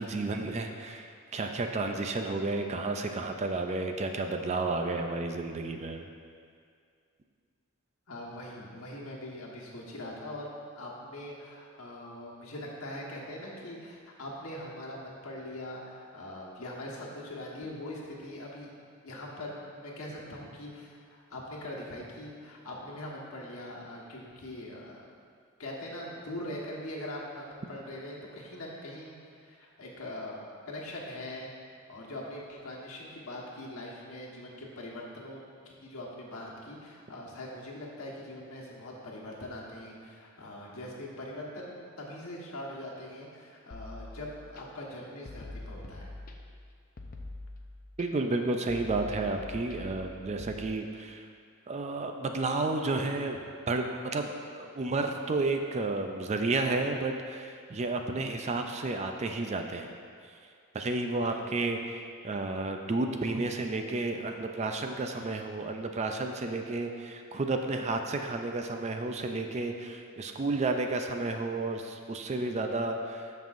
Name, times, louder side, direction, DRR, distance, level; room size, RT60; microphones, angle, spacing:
voice 1, 0.0-6.0 48.0-51.3 51.7-54.3 54.5-59.9 60.7-73.3, right 3 dB, 30° right, 5 dB, 0.4 m, -32 dB
voice 2, 8.1-18.7 19.0-25.0 25.6-30.4 30.7-31.5 31.9-35.4 35.8-46.1 61.2-61.4, left 1 dB, 65° left, -4 dB, 1.4 m, -42 dB
sound 1, 43.7-44.6 45.3-46.6 47.0-48.0 48.7-50.6, left 2 dB, 40° left, 0.6 m, -44 dB
13.5 x 5.4 x 2.6 m, 2.2 s
head